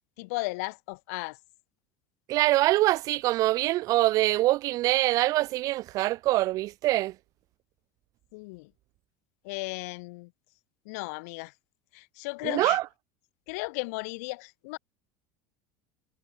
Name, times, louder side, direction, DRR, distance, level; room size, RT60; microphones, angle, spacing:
voice 1, 0.2-1.4 8.3-8.7 9.4-10.3 10.8-11.5 11.9-12.8 13.5-14.8, left 27 dB, 75° left, 1.3 m, -35 dB
voice 2, 2.3-7.2 12.4-12.8, right 17 dB, 45° right, 0.4 m, -24 dB
supercardioid pair, 145°, 9 cm